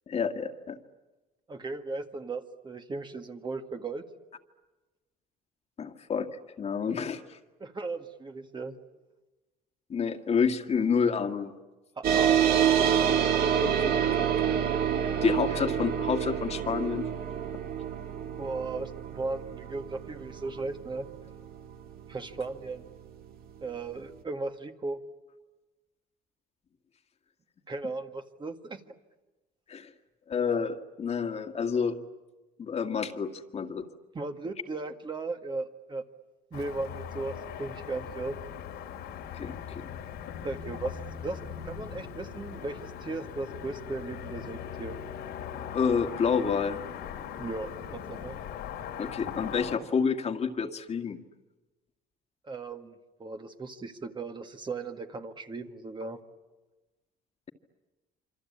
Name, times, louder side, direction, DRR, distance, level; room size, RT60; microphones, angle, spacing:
voice 1, 0.1-0.8 5.8-6.3 6.6-7.4 9.9-11.5 13.6-14.5 15.2-17.1 29.7-29.9 30.3-32.0 32.6-33.9 39.3-39.9 45.7-46.8 49.0-51.2, left 6 dB, 40° left, 5 dB, 2.0 m, -29 dB
voice 2, 1.5-4.0 7.6-8.8 12.0-12.6 15.0-15.1 18.4-21.1 22.1-22.9 23.6-25.0 27.7-28.8 34.1-36.0 36.5-38.4 40.4-45.0 47.4-48.4 52.5-52.9 53.2-56.2, right 3 dB, 25° right, 5 dB, 1.8 m, -37 dB
sound 1, 12.0-23.0, right 8 dB, 60° right, 2.4 m, -28 dB
Car passing by / Traffic noise roadway noise, 36.5-49.8, left 8 dB, 90° left, 3.2 m, -40 dB
27.5 x 25.0 x 8.7 m, 1.2 s
cardioid pair, 110°, 17 cm